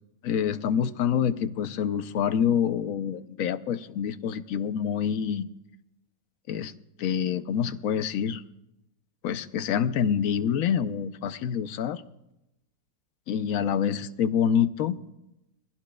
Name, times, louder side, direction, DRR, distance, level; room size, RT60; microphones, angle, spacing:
voice 1, 0.2-5.5 6.5-6.7 7.0-8.4 9.2-12.0 13.3-15.0, left 8 dB, 65° left, 12 dB, 1.0 m, -26 dB
22.5 x 16.5 x 2.3 m, 0.89 s
omnidirectional pair, 1.7 m